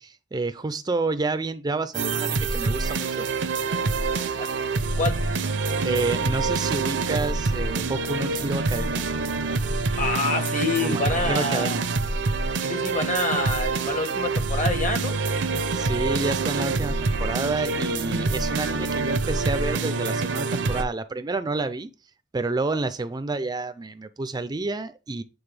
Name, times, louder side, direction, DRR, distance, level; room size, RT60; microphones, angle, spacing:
voice 1, 0.0-3.3 5.8-9.0 10.8-11.8 15.5-21.9 22.3-25.2, right 3 dB, 20° right, 0.4 m, -29 dB
sound 1, 1.9-20.8, right 3 dB, 70° right, 0.6 m, -26 dB
voice 2, 10.0-11.8 12.6-15.2, left 3 dB, 45° left, 1.2 m, -27 dB
8.8 x 3.9 x 3.3 m
head